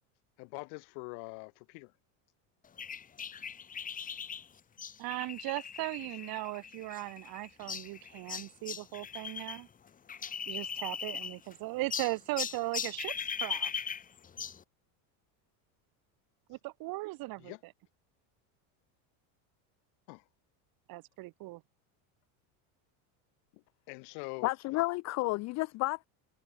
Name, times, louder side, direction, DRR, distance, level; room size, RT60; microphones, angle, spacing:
voice 1, 0.4-1.9 17.4-17.6 20.1-20.2 23.5-24.5, left 40 dB or more, 65° left, 2.0 m, -44 dB
sound 1, 2.8-9.6 9.9-11.5 11.9-14.6, left 7 dB, 20° left, 0.9 m, -39 dB
voice 2, 5.0-9.7 10.5-13.7 16.5-17.5 20.9-21.6, right 20 dB, 55° right, 2.0 m, -38 dB
voice 3, 24.4-26.1, left 21 dB, 40° left, 0.5 m, -31 dB
supercardioid pair, 130°, 43 cm